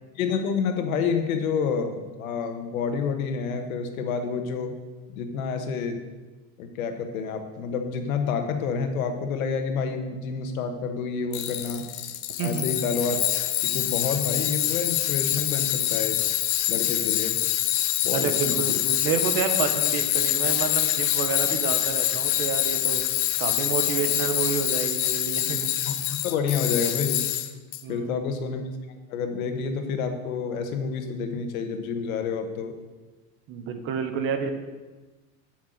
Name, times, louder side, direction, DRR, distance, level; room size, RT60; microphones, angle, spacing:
voice 1, 0.1-4.7 5.1-6.0 6.6-11.8 12.4-13.2 13.5-16.2 16.7-17.4 18.0-18.8 25.8-27.2 27.9-28.6 29.1-32.7, left 5 dB, 85° left, 6 dB, 1.6 m, -29 dB
Tools, 11.3-27.8, left 13 dB, 60° left, 0.8 m, -25 dB
voice 2, 18.1-25.7 27.8-28.3 33.5-34.5, right 6 dB, 30° right, 7 dB, 1.0 m, -29 dB
8.0 x 6.2 x 7.8 m, 1.2 s
supercardioid pair, 165°, 41 cm